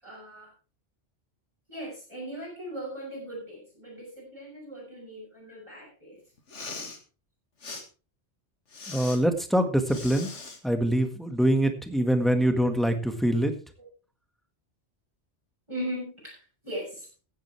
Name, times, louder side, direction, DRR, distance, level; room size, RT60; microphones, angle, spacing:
voice 1, 0.0-0.5 1.7-6.2 13.8-13.9 15.7-17.1, equal, 25° right, -5 dB, 7.0 m, -39 dB
Respiratory sounds, 6.4-7.0 7.6-7.8 8.7-9.2 9.9-10.6, left 3 dB, 80° left, 2.2 m, -40 dB
voice 2, 8.9-10.3 10.6-13.5, right 1 dB, ahead, 6 dB, 1.7 m, -24 dB
16.0 x 10.5 x 3.4 m, 0.32 s
omnidirectional pair, 1.2 m